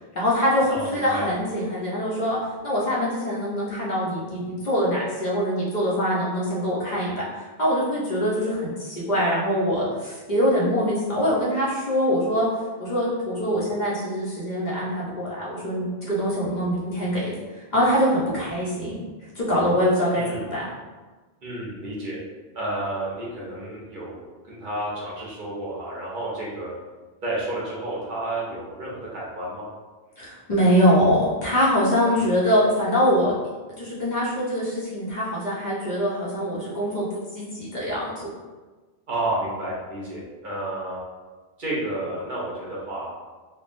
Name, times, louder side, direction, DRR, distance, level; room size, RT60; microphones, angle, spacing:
voice 1, 0.1-12.5 12.8-19.0 19.3-20.7 30.2-33.3 33.8-37.1 37.3-38.3, equal, 50° left, -7 dB, 0.8 m, -23 dB
voice 2, 0.7-1.3 20.1-20.5 21.4-22.2 22.5-26.7 27.2-29.7 32.1-32.3 39.1-41.0 41.6-43.1, right 1 dB, 55° right, -6 dB, 0.9 m, -31 dB
3.2 x 2.2 x 2.5 m, 1.3 s
omnidirectional pair, 1.1 m